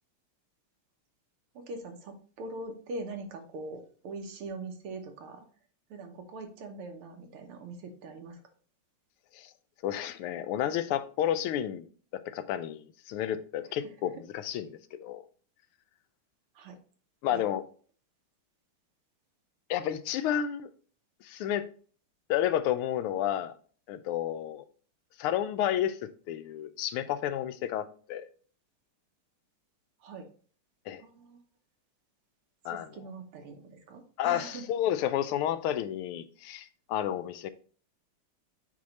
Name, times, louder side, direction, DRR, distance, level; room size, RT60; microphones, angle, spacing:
voice 1, 1.5-5.5 5.9-8.4 13.6-13.9 16.6-16.8 17.3-17.4 30.0-30.3 31.0-31.4 32.7-34.7, right 2 dB, 90° right, 2.0 m, -42 dB
voice 2, 9.8-15.2 17.2-17.6 19.7-20.7 21.2-21.7 22.3-23.5 23.9-24.6 25.2-28.3 30.9-31.0 32.6-32.9 34.2-37.5, left 11 dB, 85° left, 1.5 m, -31 dB
8.4 x 3.0 x 4.0 m
omnidirectional pair, 2.3 m